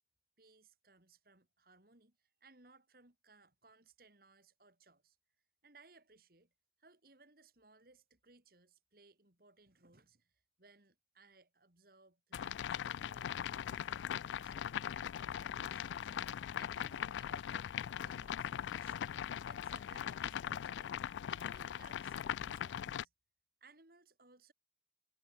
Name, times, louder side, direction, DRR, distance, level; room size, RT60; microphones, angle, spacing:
voice 1, 0.4-5.2 5.6-6.5 6.8-17.7 18.0-21.0 21.3-23.1 23.6-24.5, right 3 dB, 55° right, 3.1 m, -65 dB
sound 1, 12.3-23.0, left 9 dB, 90° left, 0.3 m, -40 dB
head